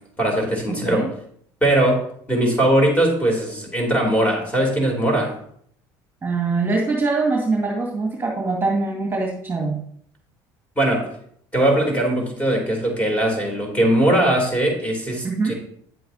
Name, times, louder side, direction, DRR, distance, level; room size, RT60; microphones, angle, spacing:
voice 1, 0.2-1.1 1.6-2.0 2.3-5.3 10.8-11.1 11.5-15.5, right 1 dB, 10° left, 1 dB, 3.2 m, -20 dB
voice 2, 0.7-1.1 6.2-9.8 15.2-15.5, right 3 dB, 20° right, -1 dB, 2.0 m, -23 dB
9.4 x 7.7 x 2.8 m, 0.66 s
hypercardioid pair, 75°, 11 cm